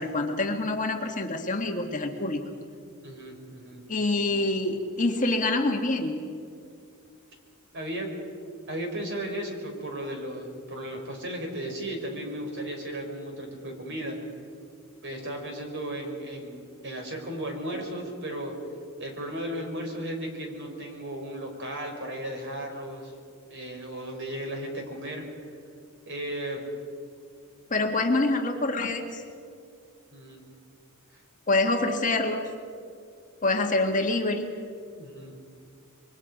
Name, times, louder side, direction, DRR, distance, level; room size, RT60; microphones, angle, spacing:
voice 1, 0.0-2.5 3.9-6.3 27.7-29.2 31.5-32.4 33.4-34.5, left 2 dB, 35° left, 3 dB, 1.7 m, -26 dB
voice 2, 3.0-3.8 7.7-8.1 8.7-14.2 15.0-18.5 19.0-23.1 23.5-25.2 26.1-26.6 30.1-30.4 35.0-35.3, right 1 dB, 55° right, 2 dB, 4.2 m, -35 dB
26.5 x 23.0 x 5.2 m, 2.3 s
head